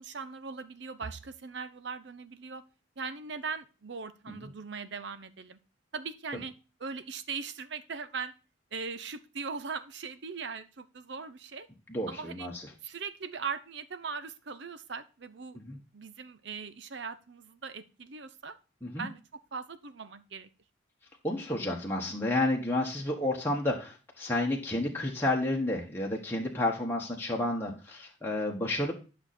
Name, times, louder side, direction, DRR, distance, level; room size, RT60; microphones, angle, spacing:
voice 1, 0.0-2.6 3.0-5.6 5.9-6.5 6.8-8.3 8.7-11.7 12.1-12.5 12.8-15.6 15.9-18.6 19.0-20.5, right 5 dB, 60° right, 12 dB, 0.7 m, -40 dB
voice 2, 11.9-12.6 15.5-15.8 18.8-19.1 21.2-28.9, left 1 dB, 10° left, -2 dB, 1.3 m, -31 dB
11.0 x 6.4 x 4.3 m, 0.33 s
head